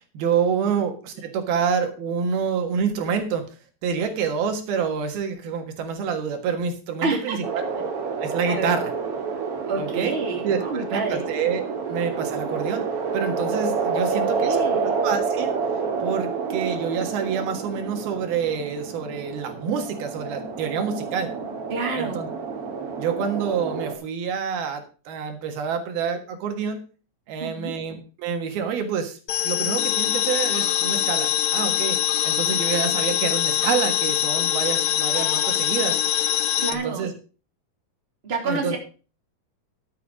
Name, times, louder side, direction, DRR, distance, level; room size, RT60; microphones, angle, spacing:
voice 1, 0.2-3.4 3.8-7.7 8.2-8.9 9.8-10.1 10.4-12.9 13.1-14.6 15.0-15.5 16.0-21.3 22.0-22.3 23.0-26.8 27.3-29.2 29.4-32.0 32.2-36.0 36.7-37.1 38.5-38.8, right 6 dB, 80° right, 6 dB, 3.5 m, -27 dB
voice 2, 7.0-7.4 8.5-8.8 9.7-11.3 14.4-14.9 21.7-22.2 27.4-27.7 36.6-37.1 38.2-38.8, right 3 dB, 15° right, 1 dB, 2.7 m, -28 dB
sound 1, 7.4-23.9, right 5 dB, 45° right, 2.5 m, -28 dB
sound 2, 29.3-36.7, left 12 dB, 70° left, 1.8 m, -23 dB
12.0 x 8.0 x 5.1 m, 0.36 s
omnidirectional pair, 4.3 m